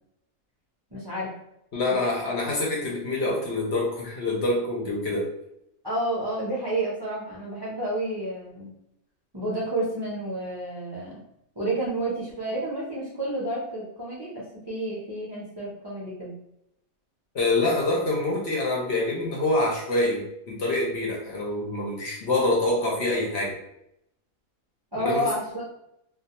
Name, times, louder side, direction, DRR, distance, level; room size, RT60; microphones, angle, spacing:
voice 1, 0.9-1.3 1.9-2.0 5.8-8.7 9.3-11.2 11.6-16.3 24.9-25.7, right 1 dB, 40° right, -7 dB, 0.3 m, -30 dB
voice 2, 1.7-5.3 17.3-23.6 24.9-25.3, left 2 dB, 60° left, -2 dB, 0.7 m, -26 dB
2.3 x 2.1 x 2.8 m, 0.79 s
omnidirectional pair, 1.5 m